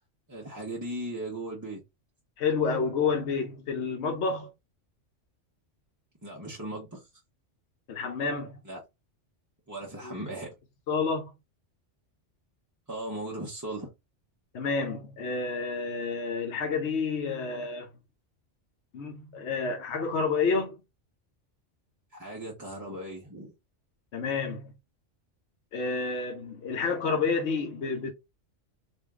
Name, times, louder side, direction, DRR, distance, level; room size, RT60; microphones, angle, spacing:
voice 1, 0.3-1.8 6.2-7.1 8.6-8.8 9.7-10.5 12.9-13.9 22.1-23.5, right 1 dB, 20° right, 0.7 m, -37 dB
voice 2, 2.4-4.5 7.9-8.6 10.0-10.1 10.9-11.3 14.5-17.9 18.9-20.8 24.1-24.7 25.7-28.1, left 4 dB, 65° left, 1.0 m, -29 dB
3.4 x 2.5 x 3.5 m
omnidirectional pair, 1.3 m